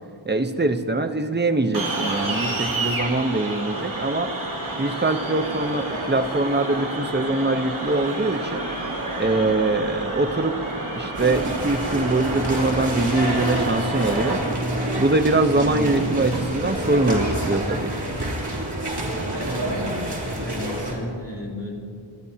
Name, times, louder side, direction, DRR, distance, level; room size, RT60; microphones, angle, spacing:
voice 1, 0.3-4.3 4.8-8.6 9.2-10.6 11.0-14.4 15.0-17.9, right 2 dB, 20° right, 8 dB, 0.8 m, -23 dB
sound 1, 1.7-14.4, right 2 dB, 90° right, 2.7 m, -30 dB
sound 2, 11.1-20.9, right 1 dB, 55° right, 3.0 m, -27 dB
voice 2, 19.5-20.0 20.4-21.7, left 2 dB, 30° left, -2 dB, 3.0 m, -34 dB
30.0 x 12.0 x 2.8 m, 2.4 s
wide cardioid pair, 40°, 48 cm